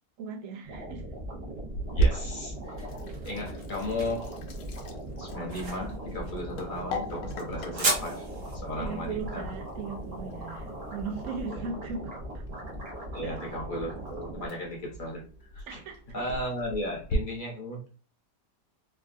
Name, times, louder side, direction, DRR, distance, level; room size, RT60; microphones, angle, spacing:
voice 1, 0.2-1.1 8.8-12.4 13.2-13.4 15.7-16.0, right 5 dB, 65° right, 0.8 m, -38 dB
sound 1, 0.6-14.5, right 1 dB, 30° right, 0.8 m, -40 dB
Sink (filling or washing), 1.7-17.2, right 2 dB, 75° left, 1.1 m, -37 dB
voice 2, 1.9-2.9 3.2-4.3 5.2-8.3 8.5-9.5 11.5-11.7 13.1-15.3 15.5-15.8 16.1-17.9, left 1 dB, 45° left, 0.7 m, -35 dB
sound 2, 2.3-11.3, right 2 dB, 50° right, 1.1 m, -37 dB
3.5 x 2.1 x 2.5 m
omnidirectional pair, 1.7 m